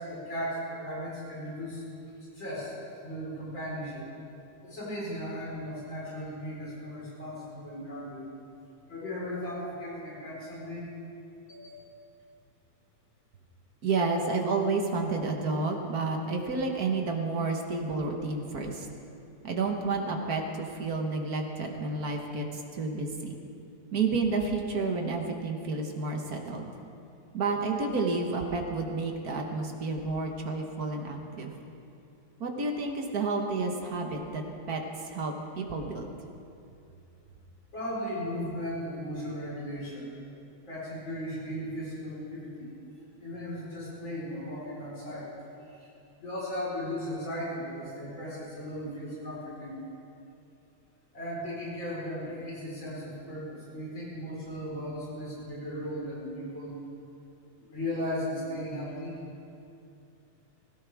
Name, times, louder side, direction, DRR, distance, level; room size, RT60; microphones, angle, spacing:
voice 1, 0.0-1.8 2.3-2.7 3.0-4.1 4.6-8.3 8.9-10.9 11.5-12.0 37.7-40.1 40.7-42.7 43.2-45.3 45.7-45.9 46.2-49.8 51.1-56.8 57.6-59.2, equal, 65° left, -7 dB, 5.1 m, -36 dB
voice 2, 13.8-18.9 19.4-23.4 23.9-26.7 27.3-31.5 32.4-36.1, right 3 dB, 50° right, 2 dB, 1.7 m, -30 dB
20.5 x 17.0 x 3.5 m, 2.6 s
omnidirectional pair, 2.3 m